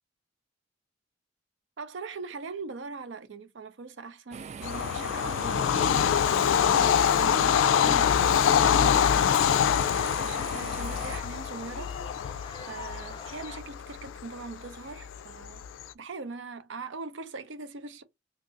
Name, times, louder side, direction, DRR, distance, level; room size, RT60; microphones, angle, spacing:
voice 1, 1.8-12.3 12.6-15.7 15.9-18.0, right 4 dB, 75° right, 0.6 m, -41 dB
sound 1, 4.3-11.2, right 6 dB, 35° right, 0.3 m, -42 dB
Bird vocalization bird call bird song / Train, 4.6-15.8, left 8 dB, 90° left, 0.3 m, -25 dB
sound 2, 7.1-13.6, left 4 dB, 25° left, 0.5 m, -47 dB
2.9 x 2.5 x 3.8 m
head